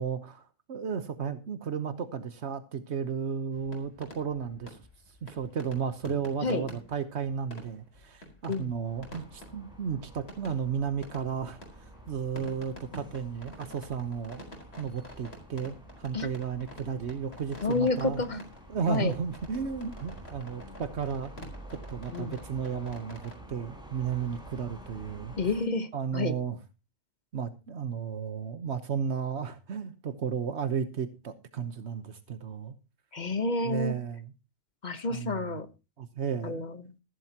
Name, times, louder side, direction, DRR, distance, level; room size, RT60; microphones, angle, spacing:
voice 1, 0.0-4.8 5.2-11.6 12.1-14.4 14.8-18.2 18.7-21.3 21.9-25.3 25.9-26.6 27.3-32.7 33.6-34.3 35.1-35.6 36.0-36.6, right 7 dB, 80° right, 10 dB, 1.3 m, -33 dB
sound 1, 3.5-23.4, equal, 70° left, 4.6 m, -49 dB
sound 2, 8.8-25.6, right 1 dB, 5° right, 5.5 m, -49 dB
voice 2, 17.6-18.4 18.9-19.2 22.1-22.4 25.4-26.3 33.1-33.9 34.8-35.7 36.4-36.9, left 3 dB, 45° left, 11 dB, 1.2 m, -30 dB
14.5 x 12.5 x 2.9 m, 0.29 s
omnidirectional pair, 1.1 m